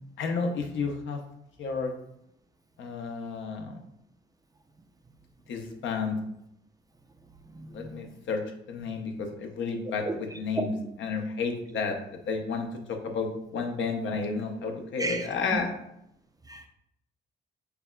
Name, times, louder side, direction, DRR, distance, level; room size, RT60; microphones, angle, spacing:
voice 1, 0.2-1.2 1.6-1.9 2.8-3.8 5.5-6.2 7.7-8.4 8.7-10.7 11.0-12.0 12.3-15.7, left 4 dB, 75° left, 3 dB, 0.8 m, -31 dB
voice 2, 7.5-8.2 10.0-10.2 10.6-10.7 15.0-15.6 16.5-16.7, right 3 dB, 20° right, 5 dB, 0.4 m, -34 dB
6.7 x 2.4 x 2.2 m, 0.78 s
cardioid pair, 90°, 20 cm